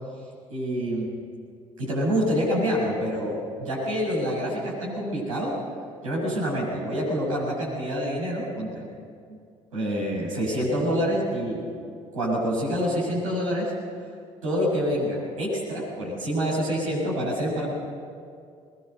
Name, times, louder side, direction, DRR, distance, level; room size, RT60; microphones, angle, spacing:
voice 1, 0.5-1.1 1.8-5.5 6.0-8.8 9.3-9.4 9.7-11.6 12.1-13.7 14.4-17.7, equal, 80° right, -6 dB, 6.9 m, -27 dB
21.5 x 21.0 x 6.7 m, 2.3 s
figure-of-eight pair, 50°, 17 cm